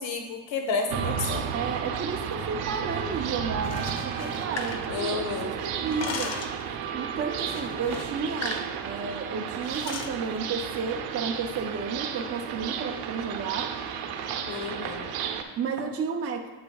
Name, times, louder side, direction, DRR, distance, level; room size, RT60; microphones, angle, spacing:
voice 1, 0.0-1.4 4.9-5.5 14.5-15.1, left 4 dB, 60° left, 4 dB, 1.2 m, -31 dB
sound 1, 0.9-15.4, right 8 dB, 90° right, 0.9 m, -33 dB
voice 2, 1.5-6.4 6.9-13.7 15.6-16.4, right 5 dB, 30° right, 2 dB, 0.4 m, -32 dB
sound 2, 3.5-5.4 5.7-6.6 7.4-8.7 9.0-9.2 9.6-10.2, left 5 dB, 35° left, 0.5 m, -37 dB
8.7 x 8.6 x 2.3 m, 1.3 s
cardioid pair, 155°, 50 cm